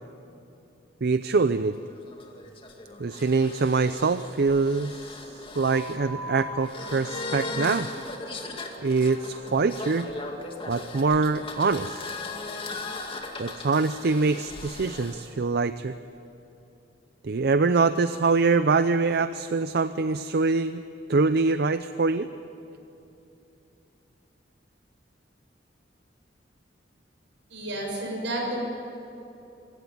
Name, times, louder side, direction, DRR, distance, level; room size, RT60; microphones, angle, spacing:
voice 1, 1.0-1.8 3.0-5.2 5.6-7.9 8.8-10.1 10.7-12.1 13.4-15.9 17.2-20.8 21.1-22.3, right 4 dB, 60° right, 12 dB, 0.5 m, -24 dB
sound 1, 1.5-15.2, left 2 dB, 30° left, 2.2 m, -38 dB
voice 2, 27.5-28.6, right 1 dB, 80° right, 0 dB, 6.6 m, -31 dB
25.5 x 15.5 x 9.5 m, 2.9 s
head